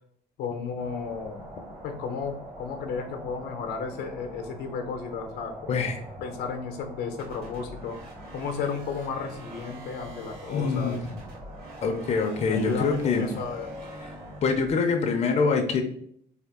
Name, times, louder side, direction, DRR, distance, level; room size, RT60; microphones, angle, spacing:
voice 1, 0.4-1.4 1.8-5.9 6.2-8.0 8.3-11.0 12.5-13.7, left 5 dB, 75° left, 5 dB, 0.7 m, -33 dB
sound 1, 0.8-14.4, right 1 dB, 55° right, 1.5 m, -44 dB
voice 2, 5.7-6.0 10.4-11.2 11.8-13.3 14.0-14.1 14.4-15.8, left 4 dB, 40° left, 3 dB, 0.6 m, -25 dB
sound 2, 7.2-14.7, right 1 dB, 75° right, 1.6 m, -47 dB
3.5 x 2.5 x 3.6 m, 0.64 s
cardioid pair, 110°, 17 cm